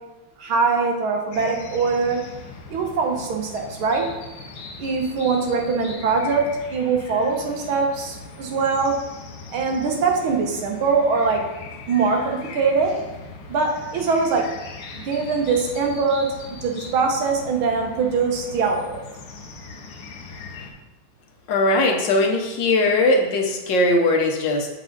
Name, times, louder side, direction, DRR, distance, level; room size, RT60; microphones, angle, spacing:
voice 1, 0.4-2.2 2.7-4.1 4.8-6.4 6.7-8.9 9.5-11.4 11.9-12.9 13.5-14.5 14.9-16.3 16.6-19.0, right 4 dB, 80° right, 2 dB, 1.8 m, -22 dB
sound 1, 1.3-20.7, left 4 dB, 85° left, 1.7 m, -40 dB
voice 2, 21.5-24.7, left 2 dB, 65° left, 2 dB, 1.4 m, -19 dB
7.6 x 4.8 x 3.9 m, 1.0 s
omnidirectional pair, 2.3 m